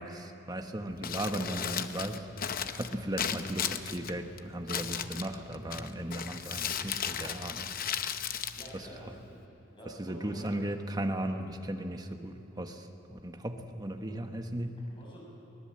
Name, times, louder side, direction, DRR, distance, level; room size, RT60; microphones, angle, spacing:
voice 1, 0.0-2.2 2.7-7.7 8.7-8.9 10.0-14.8, right 1 dB, 20° right, 5 dB, 1.3 m, -36 dB
Crumpling crinkling, 0.9-9.5, left 8 dB, 50° left, 0.8 m, -36 dB
voice 2, 8.5-9.3 9.7-10.5 15.0-15.2, right 1 dB, 25° left, -5 dB, 6.5 m, -48 dB
23.5 x 18.5 x 7.8 m, 2.8 s
head